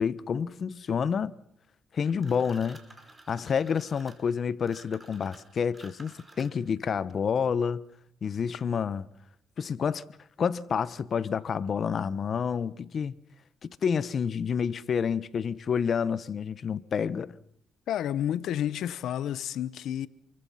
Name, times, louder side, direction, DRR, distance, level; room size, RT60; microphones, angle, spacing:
voice 1, 0.0-1.3 1.9-2.8 3.3-7.8 8.2-9.0 9.6-10.0 10.4-13.1 13.8-17.3, left 6 dB, 50° left, 1.0 m, -29 dB
sound 1, 2.2-6.8, right 2 dB, 15° right, 5.2 m, -52 dB
voice 2, 17.9-20.1, left 11 dB, 80° left, 0.9 m, -30 dB
28.0 x 23.5 x 5.8 m
cardioid pair, 90°, 0 cm